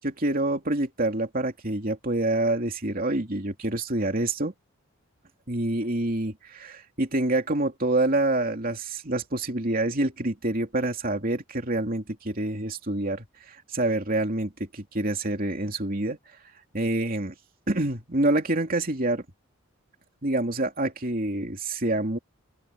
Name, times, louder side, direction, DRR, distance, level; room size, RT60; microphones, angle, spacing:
voice 1, 0.0-4.5 5.5-16.2 16.7-17.3 17.7-19.2 20.2-22.2, right 2 dB, 40° right, 2.8 m, -27 dB
open air
head